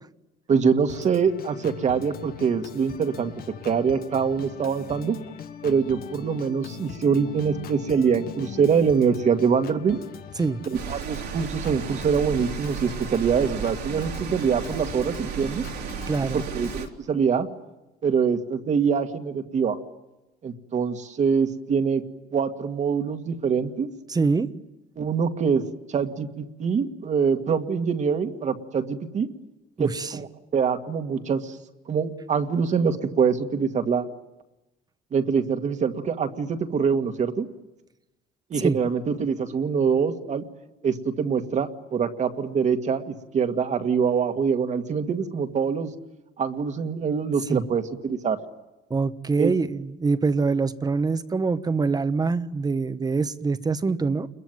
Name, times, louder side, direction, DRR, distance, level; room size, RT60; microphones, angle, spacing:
voice 1, 0.5-3.3 3.6-5.2 5.6-10.0 10.7-15.6 16.3-17.5 18.0-19.8 20.4-22.0 22.3-23.9 25.0-25.6 25.9-29.3 29.8-31.6 31.9-34.0 35.1-37.5 38.5-40.4 40.8-45.9 46.4-48.4 49.4-49.5, right 6 dB, 45° right, 7 dB, 1.9 m, -24 dB
Organ, 0.9-16.9, left 9 dB, 60° left, 1.4 m, -41 dB
sound 1, 10.7-16.9, right 8 dB, 75° right, 3.0 m, -34 dB
voice 2, 16.1-16.4 24.1-24.5 29.8-30.2 38.6-38.8 47.5-47.6 48.9-54.3, right 4 dB, 25° right, 12 dB, 1.2 m, -24 dB
29.0 x 22.0 x 9.3 m, 1.0 s
cardioid pair, 110°, 17 cm